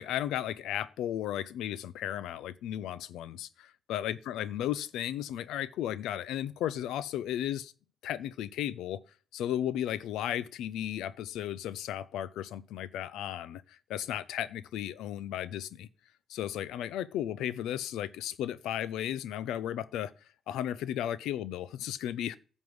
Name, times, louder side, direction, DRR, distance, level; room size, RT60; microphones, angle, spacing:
voice 1, 0.0-7.7 8.0-9.0 9.3-15.9 16.3-20.1 20.5-22.4, left 11 dB, 85° left, 0.5 m, -35 dB
9.6 x 5.3 x 7.9 m
cardioid pair, 90°, 0 cm